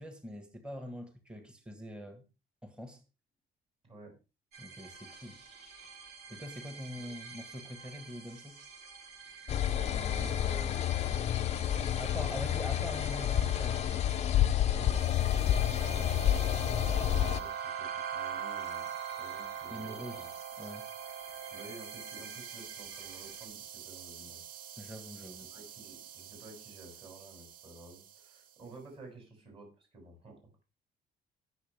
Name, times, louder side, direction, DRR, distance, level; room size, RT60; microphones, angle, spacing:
voice 1, 0.0-2.2 2.6-3.0 4.6-5.4 6.3-8.5 12.0-14.0 19.7-20.3 20.6-20.9 24.8-25.5, equal, 5° right, 1.7 m, -43 dB
sound 1, 4.5-23.5, right 5 dB, 80° right, 5.9 m, -50 dB
sound 2, 9.5-17.4, left 11 dB, 40° left, 0.6 m, -29 dB
voice 2, 9.8-12.2 14.7-16.4 16.6-17.5 17.8-20.3 21.5-23.6 23.8-24.4 25.5-30.3, right 2 dB, 35° right, 7.8 m, -51 dB
sound 3, 15.0-28.4, right 8 dB, 60° right, 1.0 m, -43 dB
20.0 x 7.2 x 3.5 m
cardioid pair, 165°, 17 cm